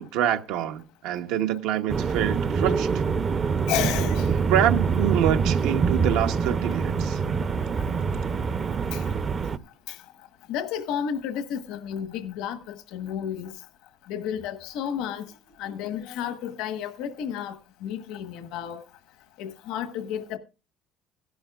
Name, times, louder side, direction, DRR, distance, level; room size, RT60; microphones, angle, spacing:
voice 1, 0.0-2.9 4.3-7.2, right 11 dB, 80° right, 1.0 m, -26 dB
sound 1, 1.9-9.6, right 5 dB, 30° right, 0.6 m, -25 dB
voice 2, 3.7-4.3 8.9-9.0 9.9-10.0 10.5-13.5 14.1-15.2 15.6-18.8 19.4-20.4, left 9 dB, 75° left, 1.3 m, -32 dB
16.0 x 11.5 x 2.4 m
cardioid pair, 110°, 0 cm